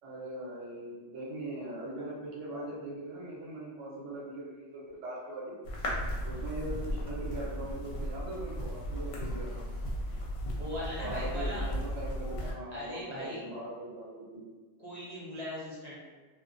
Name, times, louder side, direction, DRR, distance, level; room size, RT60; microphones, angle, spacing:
voice 1, 0.0-5.6 6.2-9.8 11.0-14.4, right 1 dB, 70° right, -5 dB, 1.1 m, -41 dB
sound 1, 5.6-12.5, equal, 75° left, 0.9 m, -35 dB
voice 2, 10.5-11.7 12.7-13.4 14.8-16.0, left 1 dB, 40° right, -7 dB, 0.7 m, -39 dB
2.5 x 2.1 x 2.5 m, 1.4 s
omnidirectional pair, 1.4 m